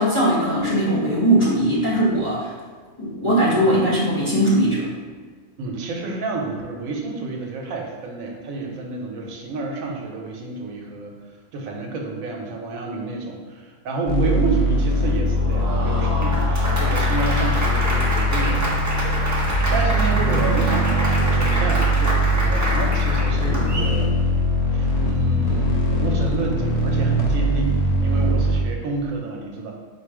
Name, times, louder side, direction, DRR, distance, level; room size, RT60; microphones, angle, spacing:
voice 1, 0.0-2.5 3.0-4.9, right 1 dB, 25° left, -8 dB, 0.8 m, -19 dB
voice 2, 5.6-11.1 11.5-24.1 24.7-29.7, right 3 dB, 85° right, 1 dB, 1.1 m, -29 dB
sound 1, 14.1-28.6, equal, 65° left, 0.4 m, -21 dB
Applause, 15.3-24.0, right 1 dB, 25° right, 0.3 m, -27 dB
4.2 x 2.4 x 4.6 m, 1.5 s
omnidirectional pair, 1.4 m